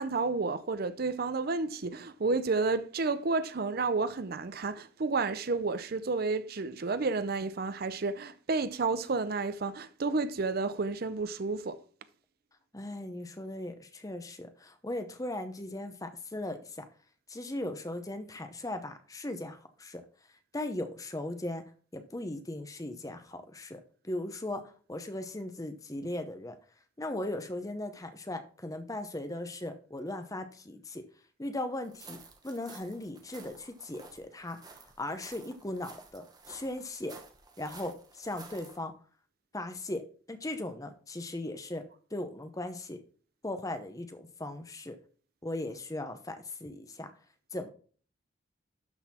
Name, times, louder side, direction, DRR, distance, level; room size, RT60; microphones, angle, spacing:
voice 1, 0.0-11.8, right 3 dB, 50° right, 0.5 m, -31 dB
voice 2, 12.7-16.9 17.3-20.0 20.5-21.6 21.9-24.6 24.9-26.6 27.0-31.0 31.4-32.2 32.4-34.6 35.0-37.2 37.6-38.9 39.5-40.0 40.3-41.8 42.1-43.0 43.4-45.0 45.4-47.1 47.5-47.7, left 1 dB, 15° left, 0.8 m, -38 dB
sound 1, 31.8-38.8, right 4 dB, 20° right, 1.0 m, -52 dB
12.0 x 4.1 x 4.2 m
head